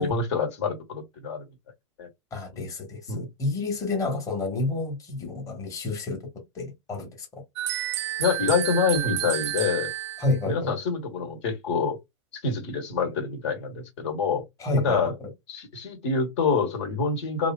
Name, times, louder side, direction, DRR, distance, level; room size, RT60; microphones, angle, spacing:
voice 1, 0.0-1.5 2.0-2.1 3.1-3.3 8.2-9.9 10.4-12.0 12.3-14.4 14.8-15.1 15.5-17.5, left 5 dB, 60° left, 1.3 m, -26 dB
voice 2, 2.3-6.2 6.5-7.4 10.2-10.7 14.6-15.1, left 2 dB, 20° left, 1.1 m, -29 dB
sound 1, 7.6-10.4, right 13 dB, 60° right, 0.4 m, -30 dB
2.7 x 2.6 x 2.2 m
hypercardioid pair, 110°, 16 cm